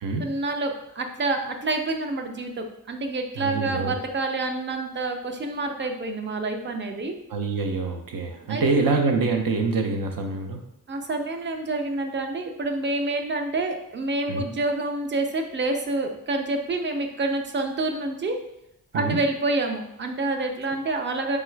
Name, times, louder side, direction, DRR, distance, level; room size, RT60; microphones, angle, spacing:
voice 1, 0.2-7.1 8.5-8.9 10.9-18.4 18.9-21.4, right 2 dB, 35° right, 5 dB, 0.4 m, -28 dB
voice 2, 3.4-3.9 7.3-10.6 14.3-14.4 18.9-19.2, right 4 dB, 75° right, 4 dB, 0.6 m, -25 dB
3.8 x 3.6 x 3.2 m, 0.83 s
wide cardioid pair, 170°, 34 cm